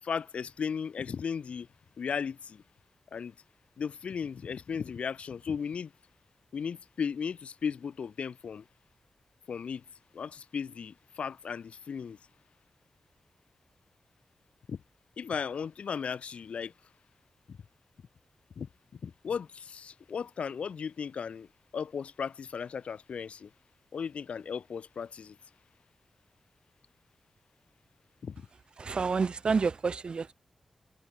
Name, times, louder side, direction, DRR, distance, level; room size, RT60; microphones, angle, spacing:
voice 1, 0.0-1.7 2.0-2.6 3.1-3.3 3.8-5.9 6.5-8.7 9.5-9.8 10.1-12.2 14.7-14.8 15.2-16.7 17.5-17.6 18.6-23.5 23.9-25.4 28.2-28.5, left 6 dB, 75° left, 4.2 m, -36 dB
voice 2, 28.8-30.3, right 5 dB, 50° right, 1.8 m, -29 dB
wide cardioid pair, 115°, 2 cm